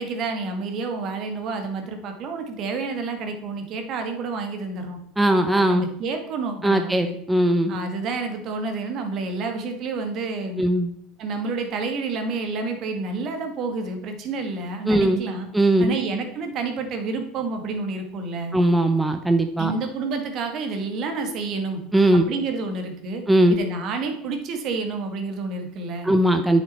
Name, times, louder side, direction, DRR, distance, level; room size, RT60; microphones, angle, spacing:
voice 1, 0.0-5.0 5.7-7.1 7.7-10.6 11.2-15.5 15.8-18.6 19.6-21.8 22.1-23.2 23.5-26.1, right 3 dB, 50° right, 5 dB, 1.6 m, -29 dB
voice 2, 5.2-5.9 6.6-7.8 10.6-10.9 14.9-15.2 15.5-16.0 18.5-19.7 21.9-22.3 23.3-23.6 26.0-26.6, right 1 dB, 5° right, 6 dB, 0.7 m, -19 dB
8.9 x 6.1 x 4.3 m, 0.71 s
hypercardioid pair, 95°, 0 cm